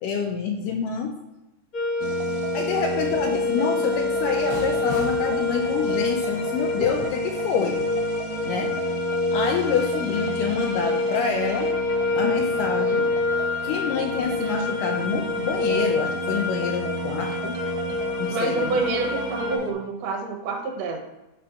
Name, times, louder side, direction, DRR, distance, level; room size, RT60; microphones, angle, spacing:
voice 1, 0.0-1.2 2.5-7.8 8.4-8.7 9.3-11.7 12.1-13.1 13.6-17.6 18.2-18.8, left 6 dB, 80° left, 1 dB, 1.9 m, -27 dB
sound 1, 1.7-19.6, left 3 dB, 60° left, 0.9 m, -27 dB
sound 2, 2.0-19.7, right 3 dB, 90° right, 2.4 m, -34 dB
sound 3, 4.4-10.8, left 1 dB, 15° left, 0.6 m, -42 dB
voice 2, 18.3-21.0, right 4 dB, 70° right, 1 dB, 1.6 m, -27 dB
5.1 x 4.3 x 5.7 m, 0.99 s
omnidirectional pair, 4.2 m